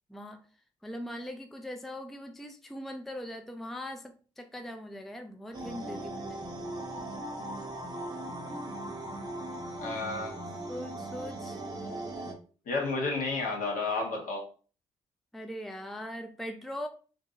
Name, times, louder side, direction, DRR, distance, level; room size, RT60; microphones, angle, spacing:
voice 1, 0.1-0.4 0.8-6.4 10.7-11.6 15.3-16.9, equal, ahead, 0.4 m, -40 dB
sound 1, 5.5-12.3, right 1 dB, 25° right, 0.9 m, -39 dB
voice 2, 9.8-10.4 12.7-14.5, left 3 dB, 60° left, 1.2 m, -31 dB
2.6 x 2.5 x 2.8 m
hypercardioid pair, 45°, 15 cm